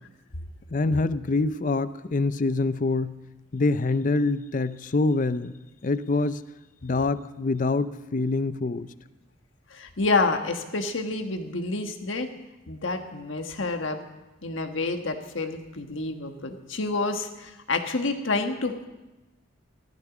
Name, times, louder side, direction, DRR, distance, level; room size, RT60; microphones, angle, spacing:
voice 1, 0.7-3.2 3.5-6.4 6.8-8.9, left 3 dB, 40° left, 14 dB, 0.5 m, -25 dB
voice 2, 9.7-12.3 12.7-14.0 14.4-18.9, left 3 dB, 75° left, 6 dB, 1.4 m, -28 dB
15.5 x 13.5 x 6.0 m, 1.0 s
head